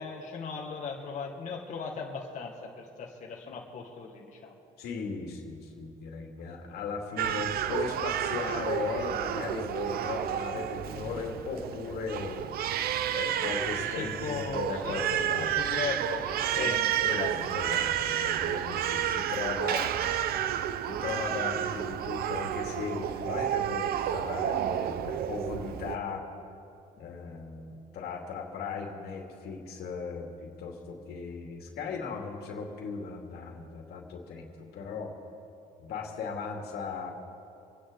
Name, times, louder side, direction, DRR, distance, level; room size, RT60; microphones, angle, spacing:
voice 1, 0.0-4.6 14.0-17.3, left 5 dB, 45° left, -2 dB, 1.8 m, -38 dB
voice 2, 4.8-12.7 13.1-15.5 16.5-16.8 17.1-19.9 20.9-26.3 27.0-35.1 35.8-37.1, left 5 dB, 70° left, 1 dB, 2.5 m, -37 dB
Crying sobbing, 7.2-26.0, right 10 dB, 65° right, 0.6 m, -31 dB
26.5 x 10.0 x 3.9 m, 2.7 s
cardioid pair, 110°, 17 cm